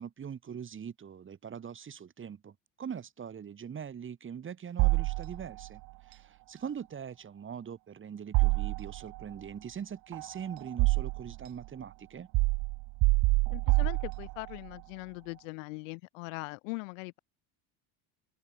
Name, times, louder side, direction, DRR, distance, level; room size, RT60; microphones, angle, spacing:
voice 1, 0.0-12.3, right 7 dB, 30° right, 3.2 m, -42 dB
sound 1, 4.8-5.7 8.3-9.2 10.1-11.4 12.3-14.6, right 26 dB, 60° right, 0.6 m, -27 dB
voice 2, 13.5-17.2, left 28 dB, 80° left, 4.8 m, -41 dB
open air
supercardioid pair, 105°, 38 cm